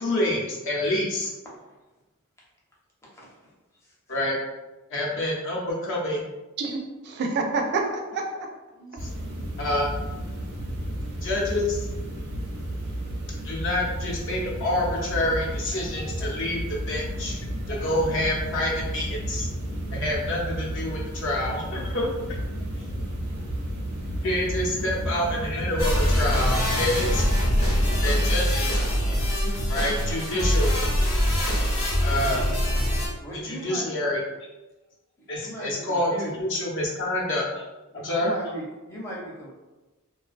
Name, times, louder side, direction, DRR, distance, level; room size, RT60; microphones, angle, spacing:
voice 1, 0.0-1.3 4.1-4.4 4.9-6.2 9.6-9.9 11.2-11.9 13.4-17.4 17.7-19.5 19.9-22.1 24.2-27.2 28.0-29.0 29.7-30.7 32.0-32.4 33.4-34.2 35.3-36.1 36.4-37.6 37.9-38.3, left 1 dB, 60° left, -3 dB, 0.6 m, -27 dB
voice 2, 3.0-3.5 3.8-3.9 33.2-34.2 35.4-36.5 37.9-39.5, right 1 dB, 10° left, -5 dB, 0.5 m, -38 dB
voice 3, 6.6-8.5 8.8-9.0, right 3 dB, 50° right, 2 dB, 0.3 m, -28 dB
sound 1, 9.0-28.3, equal, 90° right, 0.6 m, -32 dB
sound 2, 25.8-33.1, equal, 85° left, 0.8 m, -23 dB
2.3 x 2.2 x 2.4 m, 1.1 s
head